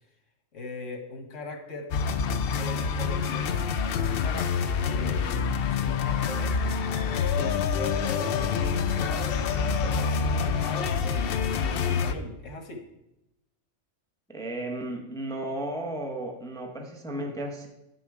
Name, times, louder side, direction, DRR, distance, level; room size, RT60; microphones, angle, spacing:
voice 1, 0.5-1.9 2.5-6.6 7.4-9.3 9.8-12.8, left 2 dB, 80° left, 4 dB, 1.6 m, -39 dB
sound 1, 1.9-12.1, left 6 dB, 60° left, 0.7 m, -27 dB
voice 2, 14.3-17.7, right 1 dB, 5° left, 1 dB, 0.8 m, -34 dB
9.9 x 6.3 x 4.8 m, 0.91 s
omnidirectional pair, 1.3 m